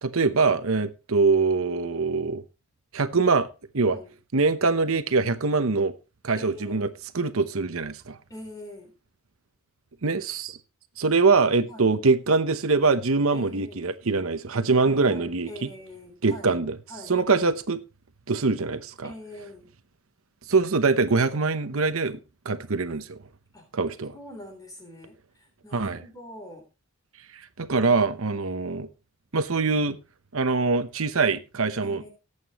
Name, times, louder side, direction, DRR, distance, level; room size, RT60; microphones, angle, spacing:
voice 1, 0.0-2.4 2.9-3.5 3.7-4.0 4.3-5.9 6.2-6.9 7.1-8.2 10.0-10.6 11.0-15.7 16.2-16.8 17.1-17.8 18.3-19.1 20.5-22.2 22.4-23.2 23.7-24.1 25.7-26.0 27.3-28.9 29.3-30.0 30.3-32.0, right 4 dB, 75° right, 0.9 m, -23 dB
voice 2, 6.4-7.0 8.3-8.9 11.7-12.0 13.3-13.9 14.8-16.6 16.9-17.2 19.0-19.7 23.5-23.7 24.1-26.7 31.8-32.1, left 1 dB, 15° left, 3.5 m, -44 dB
18.0 x 8.3 x 3.0 m
head